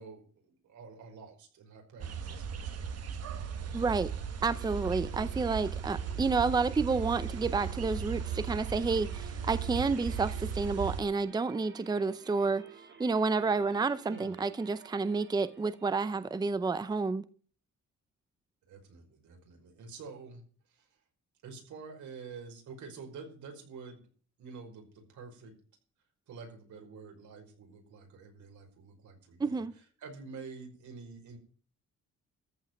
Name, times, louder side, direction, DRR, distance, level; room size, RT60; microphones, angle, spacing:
voice 1, 0.0-3.7 14.0-14.4 18.7-20.4 20.7-21.0 21.4-24.0 24.4-25.6 26.3-29.6 30.0-31.4, right 4 dB, 90° right, 5.3 m, -48 dB
sound 1, 2.0-11.0, right 7 dB, 60° right, 1.6 m, -37 dB
voice 2, 3.7-4.1 4.4-12.7 13.0-17.3 29.4-29.7, right 4 dB, 15° right, 0.6 m, -30 dB
sound 2, 4.4-16.2, right 6 dB, 45° right, 2.8 m, -53 dB
14.0 x 5.6 x 9.2 m
cardioid pair, 145°, 29 cm